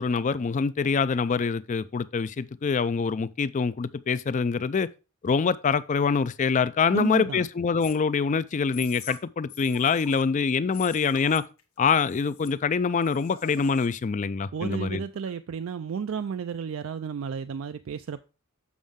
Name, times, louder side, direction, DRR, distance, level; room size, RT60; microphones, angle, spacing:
voice 1, 0.0-4.9 5.2-11.4 11.8-15.0, left 5 dB, 35° left, 0.4 m, -25 dB
voice 2, 6.9-7.5 14.5-18.2, right 6 dB, 65° right, 0.4 m, -32 dB
sound 1, 7.8-7.9 8.7-9.2 9.5-10.3 10.7-11.6 11.9-12.5 13.0-13.9, left 9 dB, 90° left, 1.2 m, -44 dB
7.2 x 6.3 x 3.6 m
head